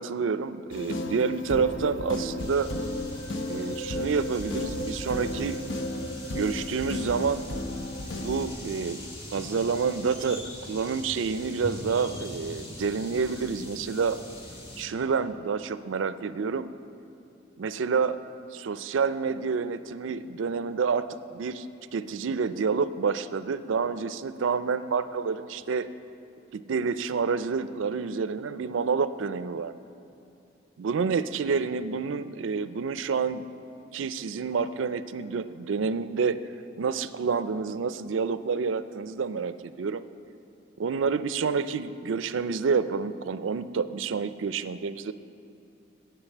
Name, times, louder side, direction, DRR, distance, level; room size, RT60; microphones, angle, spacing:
voice 1, 0.0-2.7 3.5-5.6 6.3-7.4 8.2-9.0 9.3-14.2 14.8-16.7 17.6-18.2 18.5-21.7 21.9-25.9 26.5-29.7 30.8-33.4 33.9-40.0 40.8-45.1, right 5 dB, 85° right, 13 dB, 0.4 m, -28 dB
sound 1, 0.7-8.5, left 1 dB, 70° left, 0.8 m, -33 dB
sound 2, 2.4-14.9, left 1 dB, 30° left, 1.8 m, -43 dB
9.9 x 8.3 x 7.2 m, 2.8 s
head